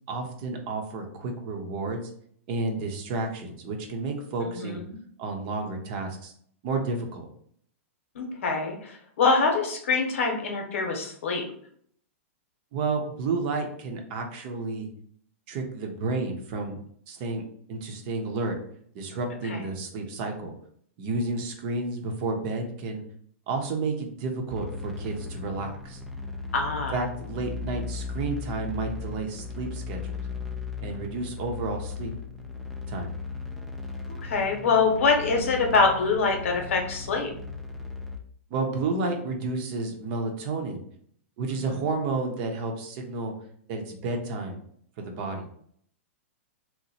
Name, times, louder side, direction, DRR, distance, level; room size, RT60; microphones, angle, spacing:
voice 1, 0.1-2.1 2.5-4.8 5.2-6.3 6.6-7.3 12.7-14.9 15.5-16.8 17.1-17.4 17.7-18.6 18.9-20.5 21.0-23.0 23.5-26.0 26.9-30.2 30.8-32.1 32.9-33.1 38.5-40.8 41.4-43.3 43.7-44.6 45.0-45.5, right 3 dB, 45° right, 3 dB, 0.8 m, -31 dB
voice 2, 4.4-5.0 8.1-11.4 19.4-19.6 26.5-27.0 34.2-37.3 41.6-41.7, left 4 dB, 75° left, 3 dB, 0.9 m, -25 dB
sound 1, 24.5-38.2, left 4 dB, ahead, 0.4 m, -37 dB
2.9 x 2.1 x 4.1 m, 0.63 s
hypercardioid pair, 130°, 7 cm